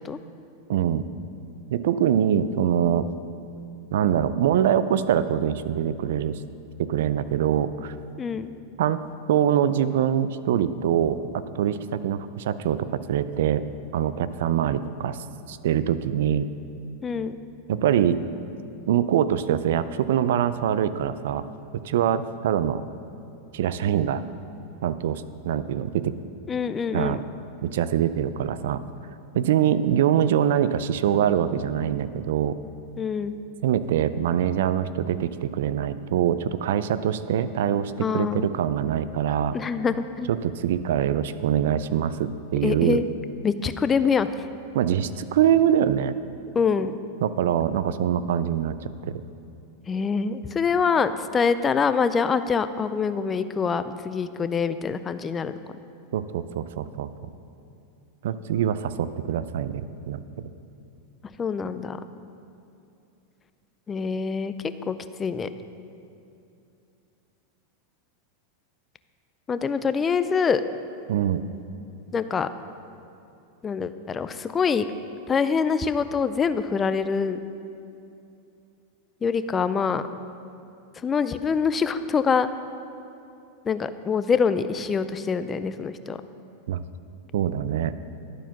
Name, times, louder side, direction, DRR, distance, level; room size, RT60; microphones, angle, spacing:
voice 1, 0.7-1.1 1.7-3.1 3.9-6.4 6.8-7.9 8.8-9.0 9.3-13.7 13.9-15.2 15.5-16.5 17.7-18.2 18.9-21.4 21.8-22.8 23.5-24.2 24.8-26.1 26.9-27.2 27.6-28.8 29.3-32.6 33.6-39.6 40.3-43.0 44.7-46.2 47.2-49.1 56.1-57.1 58.2-60.2 71.1-71.4 86.7-86.8 87.3-87.9, right 9 dB, 75° right, 14 dB, 0.4 m, -24 dB
voice 2, 8.2-8.5 17.0-17.4 26.5-27.2 33.0-33.4 38.0-38.5 39.5-40.3 42.6-43.0 43.4-44.3 46.5-47.0 49.9-55.6 61.4-62.0 63.9-64.5 64.9-65.5 69.5-70.6 72.1-72.5 73.6-74.9 75.3-77.4 79.2-80.0 81.0-82.5 83.6-86.2, left 6 dB, 20° left, 12 dB, 0.4 m, -25 dB
11.0 x 4.6 x 5.9 m, 2.7 s
supercardioid pair, 125°, 0 cm